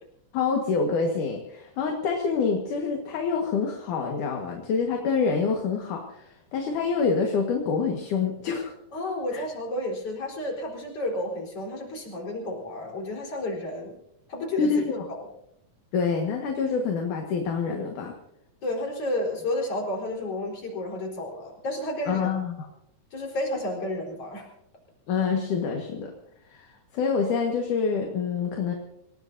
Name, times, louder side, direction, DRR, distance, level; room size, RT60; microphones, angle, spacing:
voice 1, 0.3-8.7 9.3-9.4 14.6-15.0 15.9-18.1 22.1-22.6 25.1-26.1 26.5-28.7, left 5 dB, 70° left, 2 dB, 3.1 m, -26 dB
voice 2, 8.9-14.0 14.3-14.7 15.1-15.3 18.6-22.3 23.1-24.5, left 1 dB, 45° left, 0 dB, 5.2 m, -31 dB
26.5 x 18.5 x 2.7 m, 0.78 s
omnidirectional pair, 3.9 m